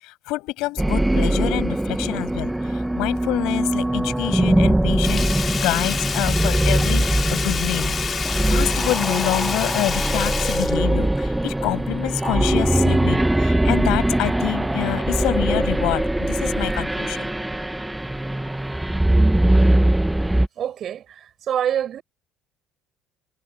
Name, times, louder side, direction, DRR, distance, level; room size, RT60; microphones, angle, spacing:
voice 1, 0.0-17.2, left 20 dB, 80° left, 6.9 m, -27 dB
sound 1, 0.8-20.5, right 1 dB, 5° right, 1.4 m, -21 dB
Sink (filling or washing), 5.0-11.5 11.9-12.0, left 6 dB, 35° left, 2.6 m, -28 dB
voice 2, 20.6-22.0, right 9 dB, 50° right, 7.6 m, -26 dB
cardioid pair, 110°, 0 cm